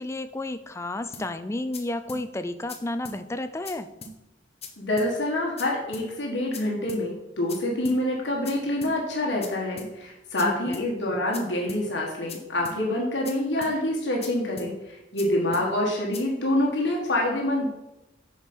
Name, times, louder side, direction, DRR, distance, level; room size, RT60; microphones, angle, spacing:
voice 1, 0.0-3.9 10.4-10.9, left 2 dB, 15° left, 11 dB, 0.4 m, -32 dB
sound 1, 1.1-1.3 1.7-1.8 2.1-2.2 2.7-2.8 3.1-3.2 3.7-3.8 4.0-4.2 4.6-4.7 5.0-5.1 5.6-5.7 5.9-6.1 6.5-6.6 6.9-7.0 7.5-7.6 7.9-8.0 8.5-8.6 8.8-9.0 9.4-9.5 9.8-9.9 10.4-10.5 10.7-10.9 11.3-11.4 11.7-11.8 12.3-12.4 12.7-12.8 13.3-13.4 13.6-13.8 14.2-14.3 14.6-14.7 15.2-15.3 15.5-15.7 16.1-16.2, left 4 dB, 35° left, 0.9 m, -40 dB
voice 2, 4.8-17.7, left 1 dB, 75° left, -2 dB, 1.5 m, -26 dB
7.3 x 4.5 x 5.3 m, 0.94 s
head